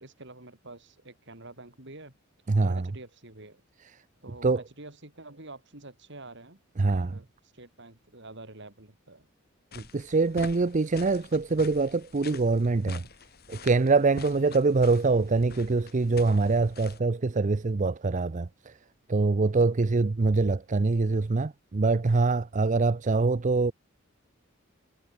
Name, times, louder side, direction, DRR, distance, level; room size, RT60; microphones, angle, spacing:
voice 1, 0.0-2.1 2.6-3.6 4.2-9.3, right 2 dB, 60° right, 5.0 m, -47 dB
voice 2, 2.5-2.8 4.4-4.6 6.8-7.2 9.7-13.0 13.5-18.7 19.1-23.7, right 3 dB, 35° right, 0.5 m, -24 dB
sound 1, 9.7-17.0, left 4 dB, 50° left, 2.1 m, -46 dB
head